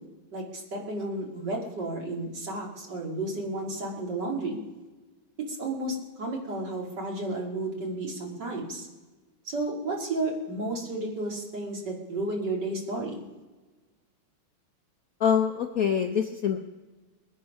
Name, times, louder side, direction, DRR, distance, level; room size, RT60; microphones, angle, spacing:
voice 1, 0.3-4.6 5.5-8.9 9.4-13.2, right 2 dB, 55° right, -2 dB, 3.1 m, -32 dB
voice 2, 15.2-16.6, left 8 dB, 60° left, 4 dB, 0.9 m, -25 dB
22.0 x 9.2 x 5.4 m, 1.2 s
omnidirectional pair, 2.2 m